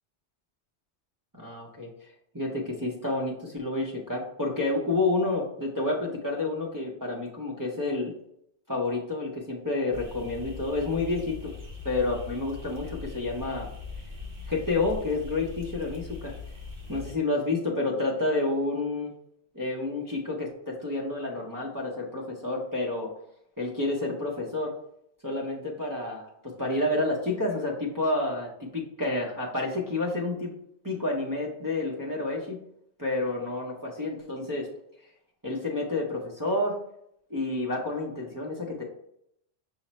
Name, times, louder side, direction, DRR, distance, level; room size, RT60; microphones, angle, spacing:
voice 1, 1.4-1.9 2.3-8.1 8.7-11.5 11.8-13.7 14.5-16.3 16.9-19.1 19.5-23.1 23.6-24.7 25.2-30.5 30.8-32.6 33.0-34.7 35.4-36.8 37.3-38.8, left 2 dB, 25° right, -4 dB, 0.5 m, -29 dB
sound 1, 9.9-17.2, left 4 dB, 60° right, 1.1 m, -41 dB
5.7 x 2.0 x 4.1 m, 0.75 s
omnidirectional pair, 1.2 m